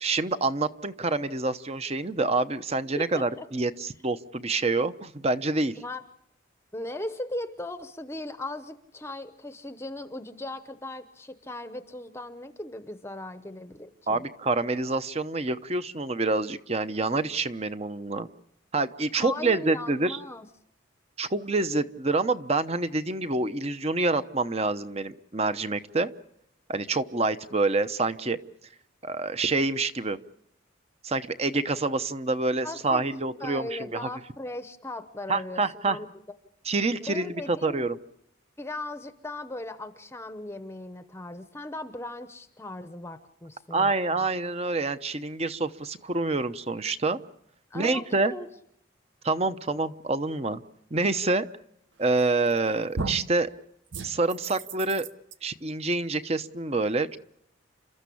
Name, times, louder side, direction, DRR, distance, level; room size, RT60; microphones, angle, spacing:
voice 1, 0.0-5.7 14.1-18.3 18.7-20.2 21.2-26.1 26.7-28.4 29.0-30.2 31.0-34.1 35.3-36.0 36.7-38.0 43.7-47.2 47.7-48.3 49.2-50.6 50.9-51.4 52.0-53.5 54.0-55.1 55.4-57.2, right 3 dB, 30° right, 12 dB, 0.9 m, -27 dB
voice 2, 2.9-3.5 5.8-6.0 6.7-14.2 19.2-20.5 32.6-36.1 37.0-37.9 38.6-44.3 47.7-48.5, left 2 dB, 10° left, 10 dB, 0.8 m, -38 dB
sound 1, 52.2-52.6 52.9-53.4 53.9-55.3, right 3 dB, 65° right, 0.9 m, -35 dB
30.0 x 13.5 x 8.5 m, 0.76 s
head